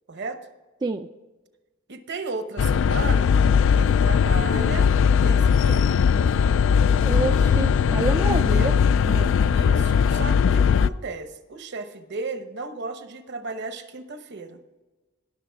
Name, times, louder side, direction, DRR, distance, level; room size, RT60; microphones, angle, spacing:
voice 1, 0.1-0.5 1.9-3.3 3.7-4.9 5.2-6.1 8.2-8.7 9.5-14.6, right 3 dB, 60° right, 9 dB, 1.0 m, -35 dB
sound 1, 2.6-10.9, left 7 dB, 70° left, 0.3 m, -19 dB
voice 2, 7.0-8.7 9.1-9.3, right 3 dB, 20° right, 6 dB, 0.3 m, -28 dB
19.0 x 6.7 x 3.5 m, 1.2 s
head